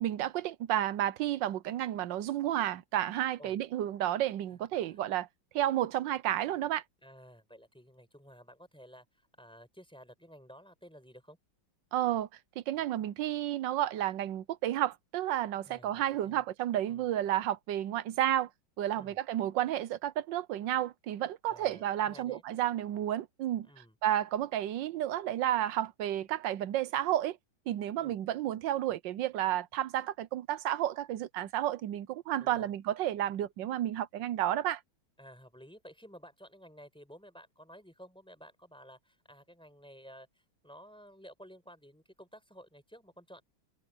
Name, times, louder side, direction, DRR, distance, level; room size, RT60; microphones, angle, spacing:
voice 1, 0.0-5.3 5.5-6.8 11.9-12.3 12.7-18.5 18.8-23.7 24.0-27.4 27.7-34.8, right 12 dB, 75° right, 1.3 m, -31 dB
voice 2, 7.0-11.4 15.7-16.4 16.9-17.1 18.9-19.2 21.4-22.4 23.6-23.9 28.0-28.2 32.4-32.7 35.2-43.4, equal, ahead, 4.8 m, -53 dB
omnidirectional pair, 2.1 m